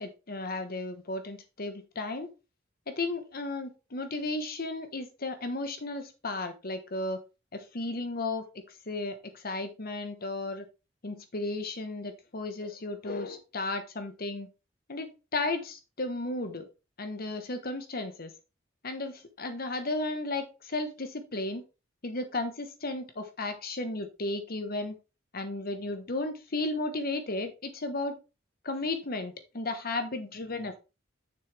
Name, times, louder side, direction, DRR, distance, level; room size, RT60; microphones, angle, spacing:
voice 1, 0.0-2.3 2.9-7.2 7.5-10.7 11.0-14.5 14.9-16.7 17.0-18.3 18.8-21.6 22.0-25.0 25.3-28.2 28.6-30.8, left 2 dB, 55° left, 9 dB, 1.3 m, -34 dB
6.7 x 6.4 x 3.4 m, 0.29 s
head